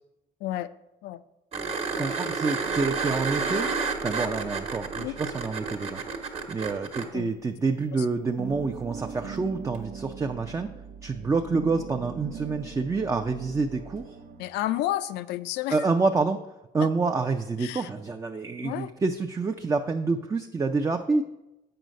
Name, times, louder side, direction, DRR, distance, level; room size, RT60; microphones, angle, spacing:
voice 1, 0.4-0.7 1.0-1.2 1.9-2.1 5.0-5.2 7.1-7.3 7.9-8.1 14.4-15.8 17.6-17.9 18.6-18.9, left 14 dB, 85° left, 15 dB, 0.4 m, -31 dB
sound 1, 1.5-7.1 9.7-9.8, right 4 dB, 40° right, 1.1 m, -30 dB
voice 2, 1.9-3.7 4.0-6.0 6.5-10.7 11.0-14.2 15.7-16.4 16.7-21.2, right 4 dB, 20° right, 5 dB, 0.4 m, -27 dB
sound 2, 2.6-7.9 8.2-14.5, right 7 dB, 65° right, 0.6 m, -41 dB
7.8 x 5.4 x 5.1 m, 0.95 s
cardioid pair, 110°, 17 cm